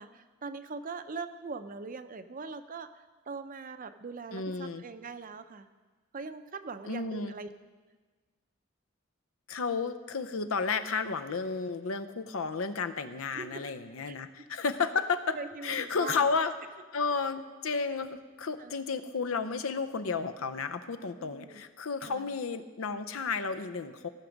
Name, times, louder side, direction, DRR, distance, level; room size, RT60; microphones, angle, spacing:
voice 1, 0.0-5.7 6.1-7.5 13.3-13.6 14.0-14.4 15.3-16.3 18.6-18.9 21.2-21.6 22.0-22.3, right 4 dB, 40° right, 11 dB, 0.5 m, -42 dB
voice 2, 4.3-4.8 6.9-7.3 9.5-15.4 15.6-16.5 16.9-24.1, left 4 dB, 90° left, 11 dB, 0.7 m, -32 dB
17.5 x 6.0 x 5.2 m, 1.4 s
head